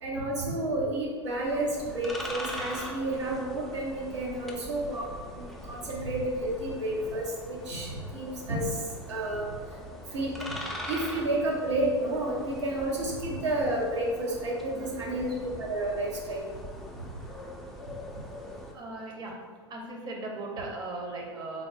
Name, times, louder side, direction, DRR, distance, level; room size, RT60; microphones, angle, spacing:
voice 1, 0.0-5.1 5.4-8.8 9.1-9.4 10.1-10.6 10.9-15.3 15.6-16.5, right 1 dB, 80° right, -3 dB, 0.9 m, -31 dB
sound 1, 1.3-18.7, equal, ahead, 0.4 m, -42 dB
voice 2, 14.7-15.4 18.7-19.4 19.7-21.7, right 2 dB, 30° right, 0 dB, 0.7 m, -38 dB
3.8 x 2.0 x 3.3 m, 1.5 s
hypercardioid pair, 95°, 15 cm